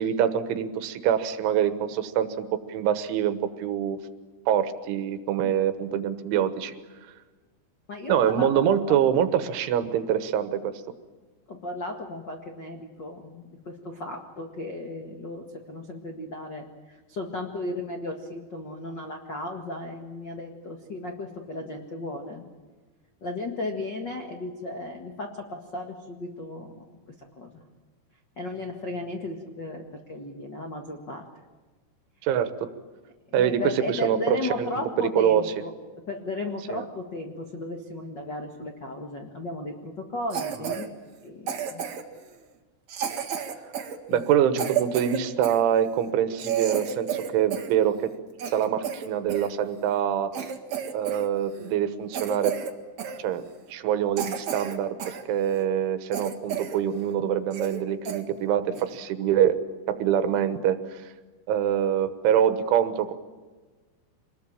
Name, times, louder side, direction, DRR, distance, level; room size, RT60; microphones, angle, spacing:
voice 1, 0.0-4.0 4.5-6.8 8.1-10.8 32.2-32.7 33.3-34.7 35.0-35.4 36.7-36.8 40.6-40.8 44.1-48.1 48.5-50.3 50.9-52.6 53.2-53.4 53.7-59.6 59.9-61.1 61.5-63.1, right 9 dB, 80° right, 10 dB, 3.8 m, -25 dB
voice 2, 7.9-8.9 11.5-22.5 23.2-26.8 27.4-27.5 28.4-29.8 30.1-31.2 33.4-35.7 36.1-40.9 41.2-41.9 44.1-44.2, left 2 dB, 80° left, 3 dB, 0.9 m, -35 dB
Cough, 40.3-40.9 41.5-42.2 42.9-45.6 46.1-46.2 46.4-47.8 48.1-49.5 50.0-50.1 50.3-51.3 51.5-51.7 52.1-52.7 53.0-53.2 53.7-53.8 54.2-55.2 55.6-55.7 56.1-56.8 57.1-57.2 57.5-57.8 58.1-58.2 58.7-59.0, right 8 dB, 55° right, 2.1 m, -31 dB
26.0 x 20.5 x 8.9 m, 1.3 s
omnidirectional pair, 5.5 m